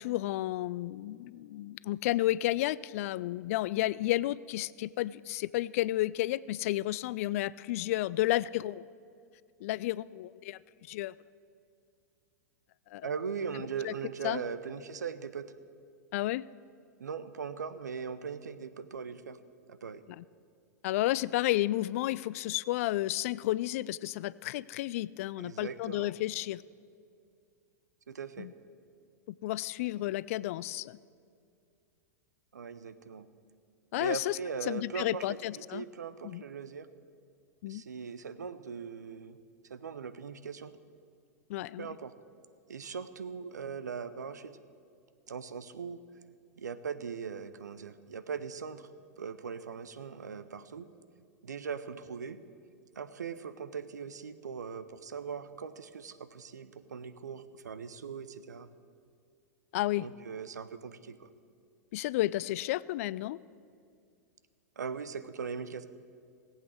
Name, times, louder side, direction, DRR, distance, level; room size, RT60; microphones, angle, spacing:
voice 1, 0.0-8.8 9.6-10.6 10.9-11.1 12.9-13.1 13.8-13.9 14.2-14.4 16.1-16.4 20.2-20.3 20.8-26.6 28.4-28.5 29.3-31.0 33.9-34.4 34.7-35.8 36.2-36.4 37.6-37.8 41.5-41.9 59.7-60.1 61.9-63.4, left 16 dB, 55° left, 20 dB, 0.3 m, -32 dB
voice 2, 13.0-15.5 17.0-19.4 19.7-20.0 25.4-26.1 28.1-28.5 32.5-33.3 34.0-35.3 35.5-36.9 37.7-39.4 39.7-40.8 41.8-42.1 42.7-44.6 45.3-46.0 46.6-48.9 49.2-50.9 51.4-52.4 52.9-58.7 60.0-61.3 64.8-65.8, right 6 dB, 80° right, 13 dB, 0.7 m, -40 dB
18.0 x 8.3 x 6.3 m, 2.3 s
hypercardioid pair, 100°, 9 cm